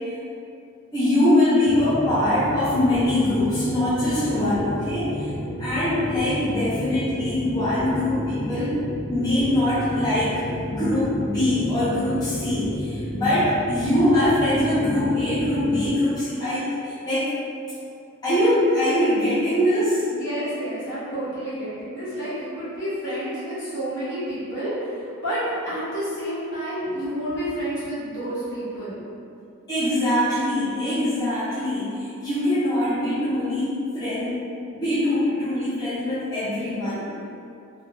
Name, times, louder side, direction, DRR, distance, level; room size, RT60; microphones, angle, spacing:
voice 1, 0.9-5.3 5.6-8.8 9.1-10.4 10.7-17.3 18.2-20.0 29.7-34.4 34.7-37.1, left 1 dB, 20° left, -14 dB, 0.5 m, -23 dB
sound 1, 1.6-15.9, equal, 75° left, 0.7 m, -32 dB
voice 2, 20.1-29.0, right 1 dB, 55° left, -12 dB, 1.2 m, -30 dB
3.2 x 2.1 x 2.6 m, 2.6 s
head